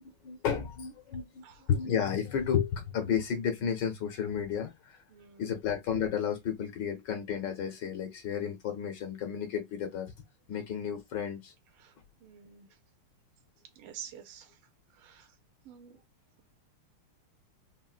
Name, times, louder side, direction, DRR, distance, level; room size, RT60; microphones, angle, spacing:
voice 1, 0.2-5.0 5.4-10.1 10.5-11.5, left 8 dB, 65° left, 1.3 m, -32 dB
voice 2, 5.1-5.6 10.5-10.7 11.8-11.9 12.2-12.7 13.8-14.5 15.0-15.3 15.6-16.0, right 8 dB, 90° right, 1.6 m, -48 dB
4.3 x 2.0 x 2.3 m
omnidirectional pair, 2.3 m